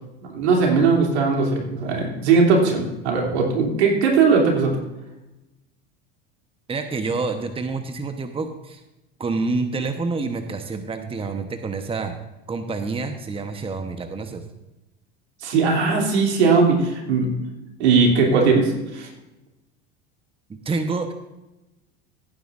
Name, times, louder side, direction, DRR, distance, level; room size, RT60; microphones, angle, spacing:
voice 1, 0.3-4.7 15.4-17.3 17.8-19.1, right 4 dB, 85° right, 0 dB, 3.0 m, -19 dB
voice 2, 6.7-8.8 9.2-12.1 12.5-14.4 20.5-21.1, right 3 dB, 15° right, 7 dB, 1.0 m, -27 dB
16.5 x 9.3 x 2.6 m, 0.96 s
hypercardioid pair, 90°, 32 cm